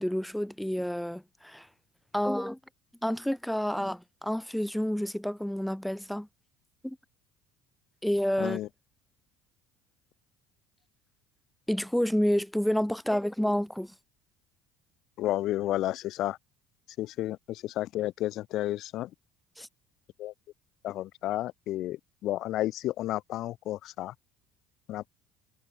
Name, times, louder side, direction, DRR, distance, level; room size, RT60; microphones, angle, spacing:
voice 1, 0.0-1.7 2.1-2.6 3.0-6.3 6.8-7.0 8.0-8.6 11.7-13.9 19.6-19.7, equal, ahead, 0.4 m, -29 dB
voice 2, 8.4-8.7 15.2-16.4 17.0-19.1 20.2-20.3 20.8-24.1 24.9-25.1, left 14 dB, 60° left, 0.4 m, -32 dB
hypercardioid pair, 65°, 0 cm